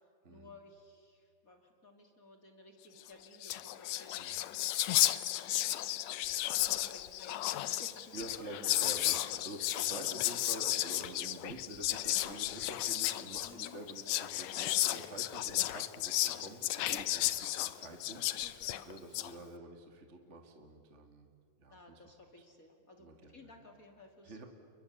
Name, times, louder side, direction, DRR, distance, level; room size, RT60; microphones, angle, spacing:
voice 1, 0.3-5.9 6.2-8.5 8.9-9.0 9.6-10.2 13.4-13.8 18.1-18.9 21.7-24.5, left 2 dB, 25° left, 4 dB, 2.5 m, -57 dB
Whispering, 3.1-3.2 3.3-19.3, left 14 dB, 80° left, 1.5 m, -33 dB
voice 2, 8.1-9.6 9.9-21.3 21.6-22.1 23.0-23.6 24.2-24.5, right 2 dB, 30° right, 4 dB, 1.5 m, -48 dB
29.5 x 22.5 x 8.4 m, 2.3 s
omnidirectional pair, 4.0 m